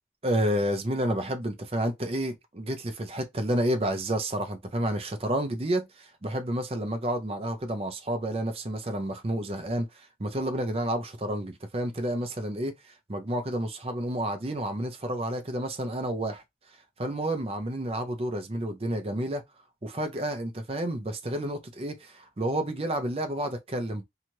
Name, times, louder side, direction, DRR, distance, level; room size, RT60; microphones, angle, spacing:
voice 1, 0.2-16.4 17.0-19.4 19.8-24.0, right 1 dB, 35° right, 0.6 m, -30 dB
2.8 x 2.4 x 3.0 m
head